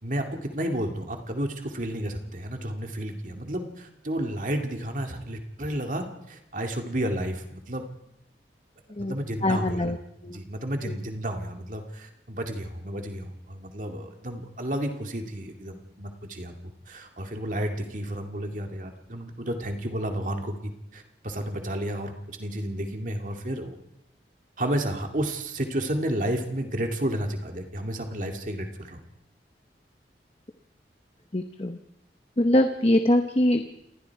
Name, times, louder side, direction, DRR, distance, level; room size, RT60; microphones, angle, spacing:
voice 1, 0.0-7.9 9.0-9.9 10.3-23.8 24.6-29.0, right 1 dB, 45° right, 4 dB, 2.4 m, -31 dB
voice 2, 9.4-10.0 10.2-10.4 10.8-11.0 31.3-31.8 32.4-33.6, left 1 dB, 35° left, 7 dB, 1.0 m, -23 dB
28.5 x 20.5 x 4.8 m, 0.86 s
head